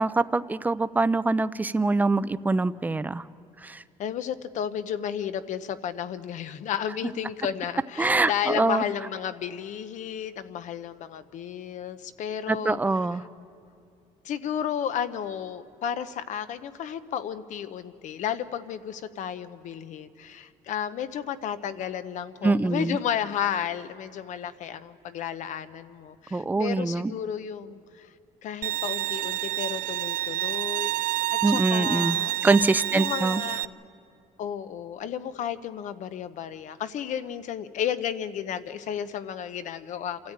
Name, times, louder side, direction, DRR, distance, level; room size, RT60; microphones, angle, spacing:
voice 1, 0.0-3.2 3.6-3.8 8.0-8.8 12.5-13.2 22.4-23.0 26.3-27.1 31.4-32.2 32.4-33.4, right 3 dB, 10° right, 14 dB, 0.4 m, -24 dB
voice 2, 4.0-12.8 14.2-28.1 28.4-32.3 32.9-33.7 34.4-40.3, left 9 dB, 60° left, 12 dB, 0.9 m, -33 dB
Bowed string instrument, 28.6-33.7, right 15 dB, 75° right, 0.5 m, -28 dB
28.0 x 13.5 x 8.8 m, 2.4 s
cardioid pair, 140°, 15 cm